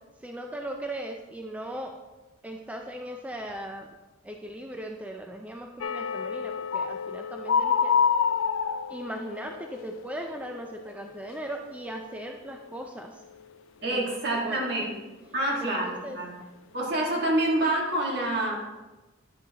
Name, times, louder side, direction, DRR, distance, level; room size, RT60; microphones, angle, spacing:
voice 1, 0.2-2.0 2.4-3.9 4.2-7.9 8.9-13.2 13.9-14.1 14.4-14.9 15.6-16.5, right 1 dB, 5° right, 2 dB, 0.4 m, -38 dB
sound 1, 5.8-11.6 11.9-12.2 12.6-12.8, left 6 dB, 70° left, 0.4 m, -28 dB
voice 2, 13.8-14.9 15.3-16.4 16.7-18.6, right 1 dB, 55° right, -2 dB, 1.7 m, -27 dB
9.8 x 6.3 x 2.9 m, 1.1 s
head